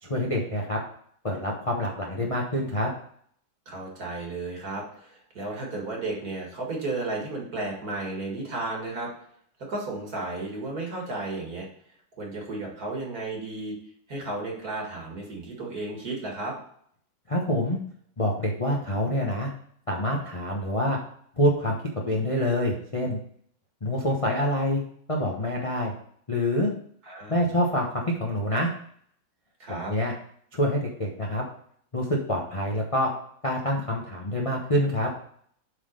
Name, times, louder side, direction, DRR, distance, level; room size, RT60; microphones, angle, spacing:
voice 1, 0.0-0.8 1.2-2.9 17.3-17.8 18.2-19.5 19.9-21.0 21.4-21.8 22.1-23.2 23.8-24.8 25.1-25.9 26.3-26.7 27.3-28.7 29.7-30.1 30.5-31.4 31.9-33.1 33.4-35.1, equal, 25° left, -2 dB, 0.7 m, -26 dB
voice 2, 3.7-9.1 9.7-11.7 12.2-13.8 14.1-16.6 27.0-27.4 29.6-29.9, right 2 dB, 50° right, -1 dB, 2.3 m, -33 dB
8.0 x 4.0 x 5.1 m, 0.63 s
omnidirectional pair, 2.0 m